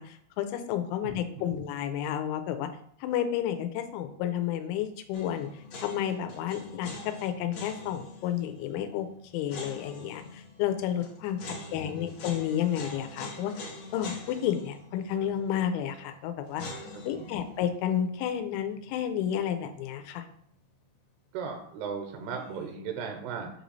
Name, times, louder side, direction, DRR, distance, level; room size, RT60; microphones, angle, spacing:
voice 1, 0.0-2.7 3.0-5.5 5.8-6.9 7.2-9.1 9.3-16.6 17.1-20.3, left 10 dB, 85° left, 8 dB, 3.0 m, -31 dB
voice 2, 1.0-1.6 11.5-12.2 16.9-17.4 21.3-23.5, right 6 dB, 80° right, 4 dB, 2.4 m, -38 dB
sound 1, 5.1-20.1 20.4-20.5 22.2-22.7, left 2 dB, 70° left, 1.6 m, -45 dB
8.4 x 3.1 x 3.9 m, 0.66 s
omnidirectional pair, 5.3 m